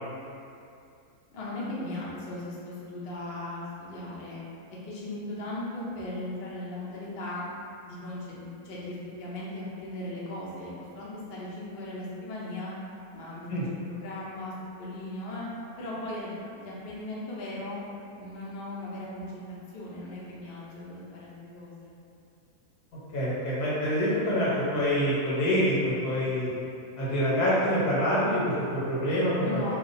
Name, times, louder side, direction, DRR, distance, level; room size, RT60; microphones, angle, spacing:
voice 1, 1.3-4.4 4.8-7.4 7.8-12.7 13.1-13.5 13.9-14.5 14.8-15.4 15.8-17.8 18.1-21.9 29.4-29.7, left 1 dB, 50° left, -6 dB, 0.8 m, -38 dB
voice 2, 23.1-26.5 27.0-29.7, equal, 85° left, -8 dB, 1.5 m, -26 dB
2.8 x 2.5 x 4.0 m, 2.5 s
omnidirectional pair, 1.6 m